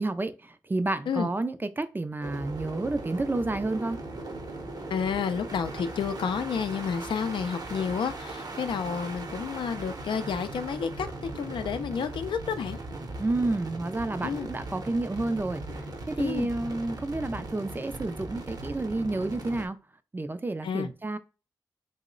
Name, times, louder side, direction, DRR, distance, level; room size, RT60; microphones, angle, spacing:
voice 1, 0.0-4.0 13.2-15.6 16.1-19.8 20.1-21.2, right 2 dB, 25° right, 0.4 m, -30 dB
sound 1, 2.2-19.7, right 2 dB, 50° right, 0.7 m, -38 dB
voice 2, 4.9-12.8 14.2-14.5 16.2-16.5 20.6-20.9, left 6 dB, 85° left, 0.4 m, -30 dB
2.9 x 2.0 x 3.7 m
cardioid pair, 60°, 8 cm